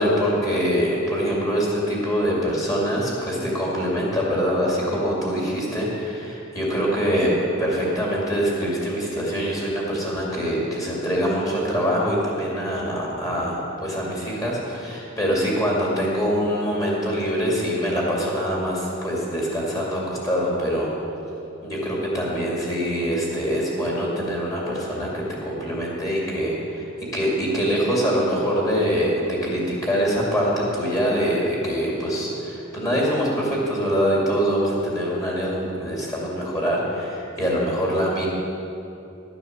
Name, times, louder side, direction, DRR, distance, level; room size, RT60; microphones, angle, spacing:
voice 1, 0.0-20.9 21.6-38.3, equal, 15° left, -4 dB, 2.4 m, -24 dB
11.5 x 7.0 x 6.7 m, 2.7 s
head